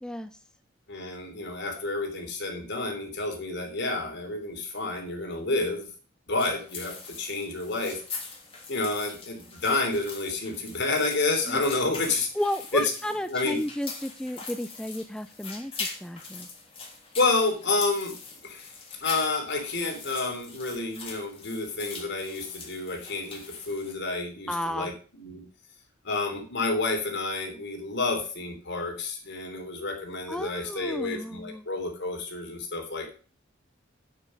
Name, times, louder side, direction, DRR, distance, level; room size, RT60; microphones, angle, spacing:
voice 1, 0.9-5.9 6.3-8.0 8.7-12.3 12.7-12.9 13.3-13.6 17.2-18.1 18.4-18.7 19.0-25.4 26.0-33.1, left 3 dB, 60° left, 3 dB, 3.2 m, -29 dB
sound 1, 6.4-23.9, left 4 dB, 30° left, 3.0 m, -42 dB
voice 2, 12.4-15.7 16.0-16.5 24.5-24.9 30.3-31.6, left 1 dB, 5° left, 10 dB, 0.4 m, -32 dB
9.0 x 8.4 x 5.0 m, 0.38 s
head